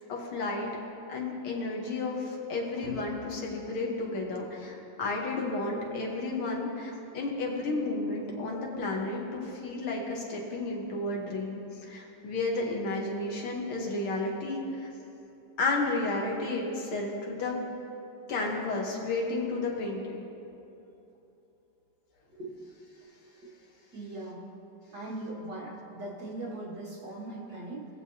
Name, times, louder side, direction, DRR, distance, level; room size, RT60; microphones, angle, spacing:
voice 1, 0.1-0.8 1.1-14.9 15.6-17.6 18.3-20.2, left 2 dB, 75° left, -1 dB, 2.2 m, -32 dB
voice 2, 23.9-24.4 24.9-27.9, right 2 dB, 50° right, -6 dB, 2.5 m, -39 dB
19.0 x 6.9 x 2.8 m, 2.9 s
omnidirectional pair, 2.3 m